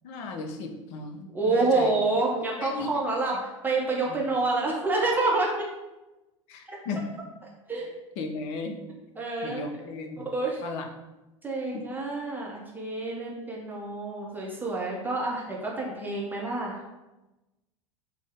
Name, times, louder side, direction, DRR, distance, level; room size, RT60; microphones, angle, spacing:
voice 1, 0.0-1.9 2.6-2.9 4.0-4.2 6.5-7.0 8.2-8.8 9.4-10.2 10.6-10.9 11.7-11.9, left 3 dB, 40° left, 4 dB, 0.5 m, -36 dB
voice 2, 1.3-5.5 6.7-6.8 7.7-7.9 9.2-9.7 10.3-10.6 11.4-16.8, right 3 dB, 10° right, -3 dB, 0.6 m, -28 dB
3.4 x 2.0 x 3.4 m, 1.0 s
figure-of-eight pair, 80°, 17 cm